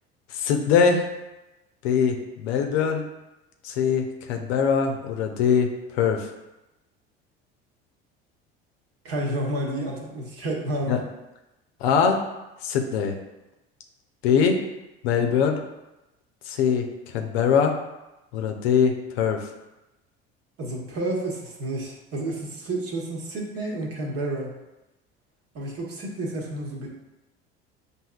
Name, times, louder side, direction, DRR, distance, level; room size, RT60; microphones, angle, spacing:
voice 1, 0.3-1.1 1.8-3.0 3.6-6.3 10.9-11.0 11.8-12.2 12.6-13.1 14.2-14.6 15.0-15.6 16.5-16.8 17.1-17.7 18.3-19.4, left 6 dB, 70° left, 4 dB, 0.6 m, -22 dB
voice 2, 9.0-11.0 20.6-24.6 25.5-26.9, right 1 dB, 45° right, -1 dB, 1.2 m, -30 dB
6.2 x 2.7 x 2.3 m, 0.98 s
hypercardioid pair, 70°, 33 cm